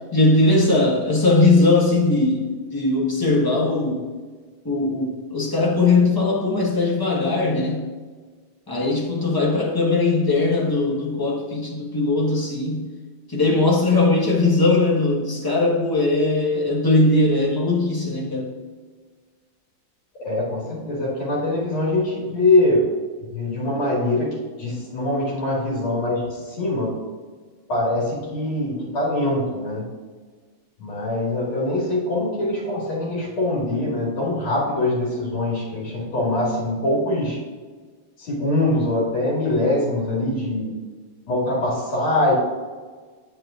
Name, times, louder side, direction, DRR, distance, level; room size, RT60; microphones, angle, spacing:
voice 1, 0.1-4.0 4.6-7.8 8.7-12.9 13.3-18.5, left 2 dB, 15° left, -3 dB, 1.1 m, -19 dB
voice 2, 20.2-22.9 23.2-27.0 27.7-29.8 30.8-37.4 38.2-40.7 41.3-42.3, left 1 dB, 90° left, -5 dB, 3.0 m, -23 dB
9.4 x 7.8 x 2.5 m, 1.4 s
omnidirectional pair, 2.2 m